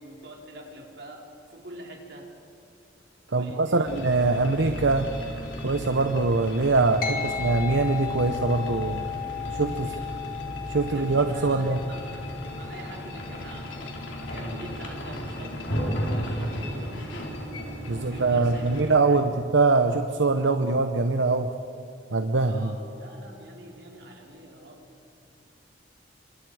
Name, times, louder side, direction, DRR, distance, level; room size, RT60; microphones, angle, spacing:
voice 1, 0.0-2.3 3.3-4.1 7.1-7.7 9.3-10.3 10.8-13.7 14.2-17.5 17.9-19.2 22.3-24.9, right 1 dB, 65° right, -1 dB, 4.2 m, -45 dB
voice 2, 3.3-5.1 5.6-9.0 9.6-9.9 10.7-11.8 17.9-21.5 22.1-22.7, right 3 dB, 85° right, 7 dB, 0.9 m, -23 dB
sound 1, 3.8-19.0, equal, 85° left, 3.8 m, -35 dB
sound 2, 7.0-16.7, left 9 dB, 50° left, 1.6 m, -37 dB
29.5 x 25.5 x 4.9 m, 2.6 s
head